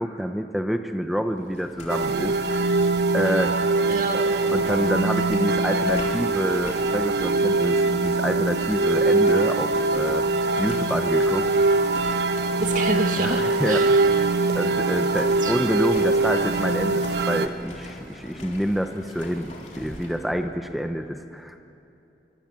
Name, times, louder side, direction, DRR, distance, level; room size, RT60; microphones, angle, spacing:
voice 1, 0.0-2.4 3.1-3.5 4.5-10.3 10.6-11.5 13.2-14.1 14.5-21.6, equal, ahead, 6 dB, 0.9 m, -27 dB
sound 1, 1.4-20.2, left 1 dB, 40° left, 3.5 m, -42 dB
sound 2, 1.9-17.5, right 3 dB, 75° right, 1.1 m, -22 dB
voice 2, 3.9-4.4 12.6-14.0 15.4-15.5, right 2 dB, 45° right, 3 dB, 2.4 m, -28 dB
25.0 x 24.5 x 7.6 m, 2.8 s
head